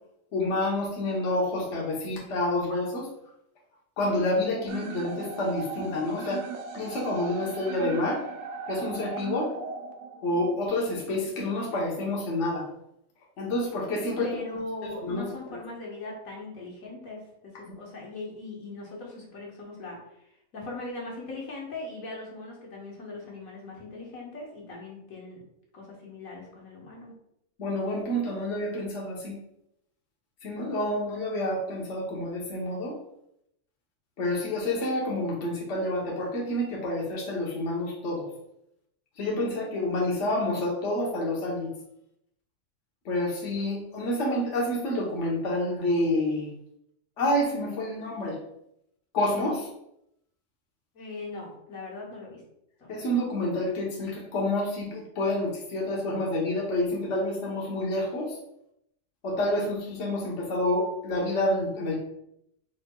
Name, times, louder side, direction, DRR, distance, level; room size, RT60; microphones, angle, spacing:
voice 1, 0.3-3.1 4.0-6.4 6.7-8.2 8.7-9.5 10.2-12.7 13.4-14.3 15.0-15.6 27.6-29.3 30.4-32.9 34.2-38.3 39.2-41.7 43.0-46.5 47.2-48.4 49.1-49.7 52.9-58.4 59.2-62.0, left 1 dB, 60° left, -3 dB, 1.3 m, -28 dB
sound 1, 4.7-10.7, right 5 dB, 70° right, 0.9 m, -38 dB
voice 2, 14.2-17.2 17.8-20.0 20.5-25.4 25.7-27.1 50.9-52.4 52.8-52.9, left 2 dB, 80° left, -2 dB, 1.6 m, -39 dB
4.9 x 4.4 x 2.3 m, 0.77 s
omnidirectional pair, 1.4 m